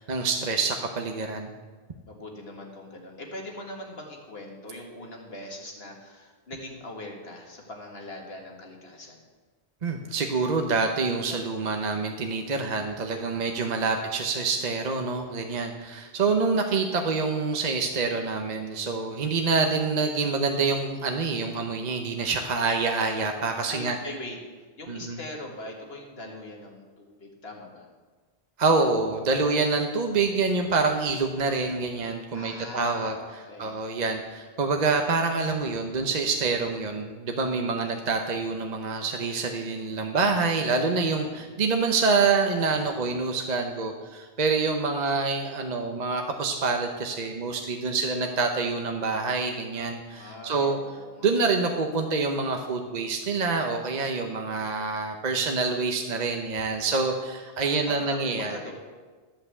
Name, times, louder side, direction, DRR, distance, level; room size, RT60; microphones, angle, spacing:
voice 1, 0.0-1.5 9.8-24.0 24.9-25.2 28.6-33.1 33.6-50.8 51.2-58.6, right 4 dB, 45° right, 4 dB, 0.9 m, -26 dB
voice 2, 2.1-9.2 23.7-24.4 24.8-27.9 32.3-33.8 41.2-41.5 50.1-51.5 57.6-58.7, left 1 dB, 70° left, 0 dB, 2.1 m, -41 dB
13.0 x 5.6 x 8.1 m, 1.4 s
omnidirectional pair, 1.1 m